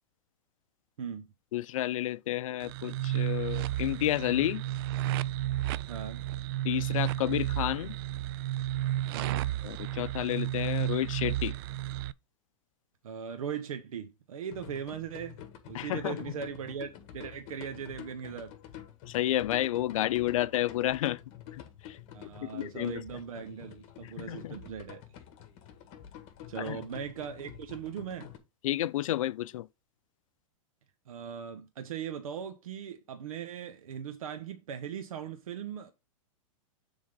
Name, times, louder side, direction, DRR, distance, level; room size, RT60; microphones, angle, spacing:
voice 1, 1.5-4.6 6.6-8.0 9.6-11.5 15.7-16.3 19.1-21.2 21.5-22.0 22.4-23.0 24.0-24.6 26.6-26.8 28.6-29.7, left 14 dB, 75° left, 0.6 m, -31 dB
sound 1, 2.6-12.1, right 13 dB, 45° right, 0.4 m, -32 dB
voice 2, 5.9-6.2 9.1-9.5 13.0-15.4 15.6-18.5 22.1-25.0 26.5-28.3 31.1-35.9, right 8 dB, 90° right, 1.1 m, -39 dB
sound 2, 14.5-28.4, left 10 dB, 40° left, 1.8 m, -48 dB
7.0 x 3.8 x 5.1 m
supercardioid pair, 145°, 17 cm